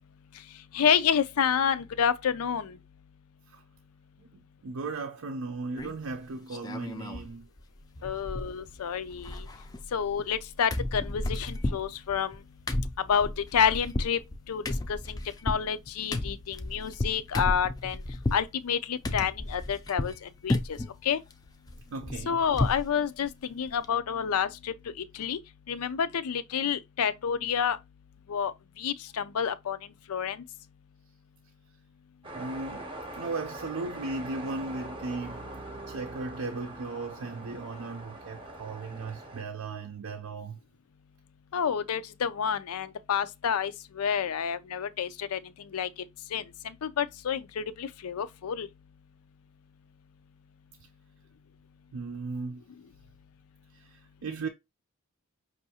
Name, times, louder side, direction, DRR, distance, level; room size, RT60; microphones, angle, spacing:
voice 1, 0.7-2.7 8.0-9.4 9.9-12.4 13.1-14.2 14.5-14.6 14.9-18.0 18.3-20.8 21.0-21.2 22.3-24.7 25.2-25.4 25.7-27.8 28.3-28.5 28.8-29.8 30.1-30.4 41.5-43.7 44.0-45.4 45.7-45.9 46.3-48.7, left 7 dB, 90° left, 0.4 m, -29 dB
voice 2, 4.6-7.5 21.9-22.4 32.3-32.8 33.2-35.5 35.9-40.6 51.9-52.6 54.2-54.5, right 3 dB, 70° right, 0.5 m, -36 dB
sound 1, 5.8-6.1 6.5-7.3 7.6-7.7 8.0-8.8 9.1-10.4 10.7-18.5 19.0-20.2 20.5-20.9 21.3-22.9 23.2-23.3 23.7-23.9, left 2 dB, 20° left, 0.4 m, -33 dB
sound 2, 32.2-39.4, right 1 dB, 25° right, 0.7 m, -42 dB
5.4 x 2.5 x 2.8 m
head